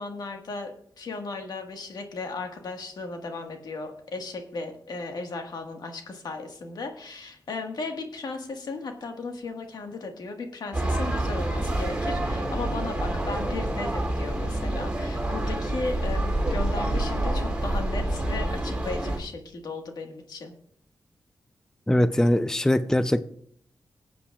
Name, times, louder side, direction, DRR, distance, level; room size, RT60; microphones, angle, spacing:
voice 1, 0.0-20.5, left 3 dB, 75° left, 4 dB, 1.7 m, -36 dB
sound 1, 10.7-19.2, right 1 dB, 15° right, 3.1 m, -27 dB
voice 2, 21.9-23.2, left 1 dB, 10° left, 11 dB, 0.5 m, -21 dB
20.0 x 8.3 x 2.4 m, 0.63 s
cardioid pair, 65°, 7 cm